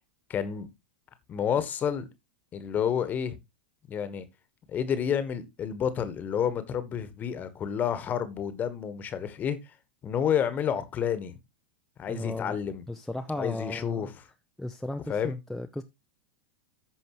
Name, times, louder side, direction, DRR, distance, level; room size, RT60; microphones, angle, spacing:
voice 1, 0.3-0.7 1.3-2.1 2.5-3.4 3.9-4.2 4.7-9.6 10.0-11.3 12.0-12.8 13.3-14.3 15.1-15.4, left 8 dB, 30° left, 1.4 m, -30 dB
voice 2, 12.1-12.5 12.9-14.1 14.6-15.8, left 1 dB, 5° left, 0.7 m, -35 dB
14.0 x 5.3 x 3.1 m
figure-of-eight pair, 90°, 6 cm